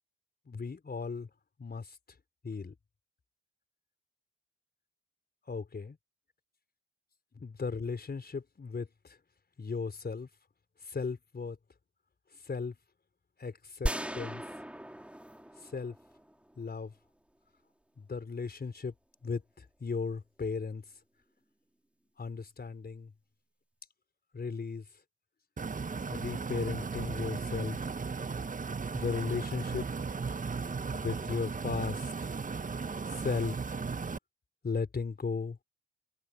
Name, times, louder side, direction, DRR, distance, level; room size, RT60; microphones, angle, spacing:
voice 1, 0.5-1.3 1.6-2.0 2.4-2.7 5.5-6.0 7.4-9.2 9.6-10.3 10.8-11.6 12.4-12.7 13.4-14.4 15.6-16.0 16.6-16.9 18.0-18.9 19.2-20.8 22.2-23.1 24.3-24.8 26.1-27.8 28.9-29.8 30.9-32.1 33.2-33.6 34.6-35.6, left 4 dB, 30° left, 4.4 m, -36 dB
sound 1, 13.9-16.8, right 1 dB, 5° right, 4.1 m, -38 dB
sound 2, 25.6-34.2, right 5 dB, 25° right, 1.7 m, -36 dB
figure-of-eight pair, 45°, 31 cm